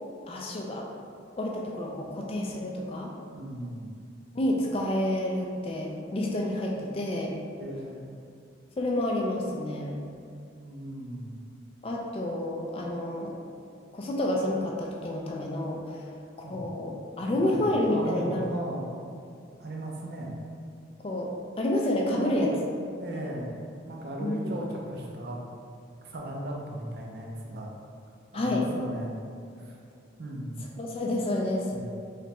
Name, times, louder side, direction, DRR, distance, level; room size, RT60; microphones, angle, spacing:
voice 1, 0.3-0.8 1.4-3.1 4.4-7.3 8.8-10.0 11.8-13.3 13.9-16.0 16.4-18.4 21.0-21.3 21.6-22.5 24.2-24.5 28.3-28.6 30.8-31.7, left 1 dB, 30° left, -1 dB, 0.3 m, -29 dB
voice 2, 3.3-3.9 7.6-8.1 10.6-11.4 16.4-16.7 17.2-18.8 19.6-20.3 22.1-22.6 23.0-23.5 23.9-25.4 26.0-27.7 28.3-29.1 29.6-29.8 30.2-30.6 31.7-31.9, right 1 dB, 55° right, -1 dB, 0.5 m, -37 dB
3.3 x 3.0 x 2.9 m, 2.3 s
head